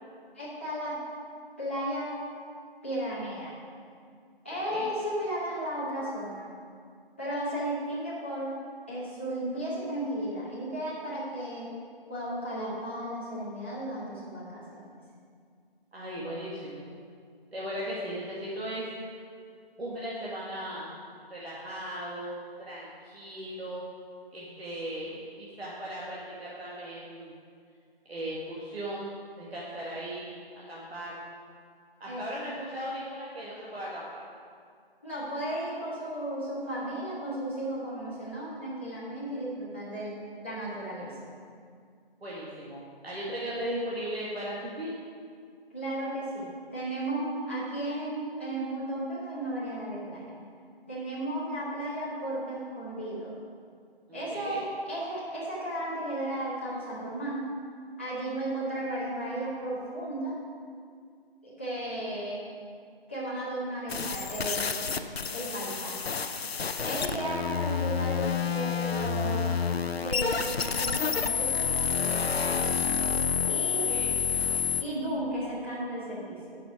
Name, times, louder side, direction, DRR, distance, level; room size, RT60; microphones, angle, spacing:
voice 1, 0.3-1.0 1.6-2.2 2.8-3.5 4.4-6.5 7.2-8.6 8.9-11.7 12.1-14.9 32.1-32.2 35.0-40.1 40.4-41.3 45.7-50.4 50.9-53.3 54.1-57.4 58.0-60.4 61.4-62.4 63.1-65.0 65.3-66.1 66.8-69.5 69.9-71.7 73.4-73.9 74.8-76.6, right 1 dB, 10° left, -11 dB, 1.1 m, -34 dB
voice 2, 4.5-4.9 15.9-16.9 17.5-18.9 19.8-20.9 21.3-22.4 22.7-23.9 24.3-27.3 28.1-31.2 32.0-34.2 42.2-44.9 54.1-54.6 73.8-74.1, equal, 80° right, -7 dB, 1.9 m, -37 dB
sound 1, 63.9-74.8, left 6 dB, 80° left, 0.6 m, -29 dB
9.5 x 5.9 x 4.8 m, 2.2 s
figure-of-eight pair, 180°, 30 cm